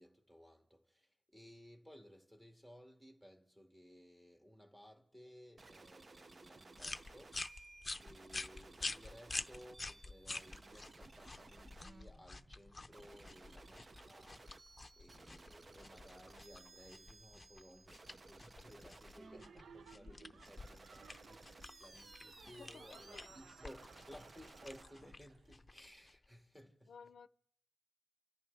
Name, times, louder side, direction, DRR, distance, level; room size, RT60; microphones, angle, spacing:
voice 1, 0.0-7.5 8.0-14.7 15.0-26.9, equal, 10° right, 2.2 m, -59 dB
sound 1, 5.6-24.8, right 3 dB, 40° right, 0.6 m, -59 dB
sound 2, 6.8-26.3, left 2 dB, 25° left, 0.7 m, -49 dB
Laughter, 19.2-25.5, right 6 dB, 85° right, 0.5 m, -61 dB
voice 2, 22.4-23.3 26.9-27.3, left 6 dB, 85° left, 0.5 m, -56 dB
29.0 x 14.5 x 3.4 m
wide cardioid pair, 100°, 0 cm